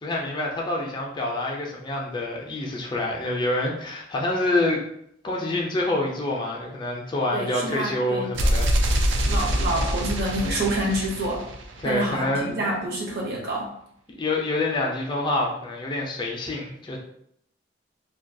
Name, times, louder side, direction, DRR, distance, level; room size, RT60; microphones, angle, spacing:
voice 1, 0.0-4.8 5.2-8.7 9.2-9.3 11.8-12.6 14.1-17.0, left 2 dB, 25° left, -1 dB, 0.4 m, -27 dB
voice 2, 7.3-8.3 9.3-11.5 11.8-13.7, right 1 dB, 55° right, -3 dB, 0.7 m, -27 dB
sound 1, 8.3-12.2, equal, 80° right, 0.4 m, -25 dB
2.3 x 2.2 x 2.6 m, 0.71 s
head